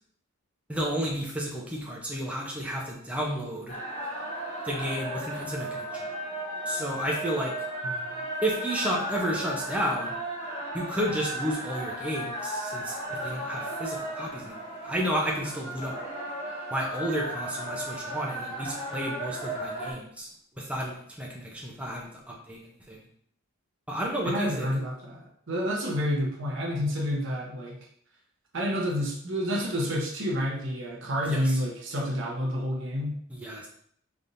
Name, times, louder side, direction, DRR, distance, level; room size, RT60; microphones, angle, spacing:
voice 1, 0.7-3.8 4.6-6.1 6.7-7.5 8.4-10.1 10.7-16.0 16.7-20.3 20.6-22.6 22.9-23.0 23.9-24.7 31.2-31.6 33.3-33.7, equal, 5° right, -3 dB, 0.6 m, -32 dB
sound 1, 3.7-19.9, right 1 dB, 25° left, 1.3 m, -35 dB
voice 2, 24.2-27.8 28.5-33.1, equal, 55° right, -2 dB, 0.9 m, -29 dB
4.1 x 3.5 x 2.6 m, 0.65 s
head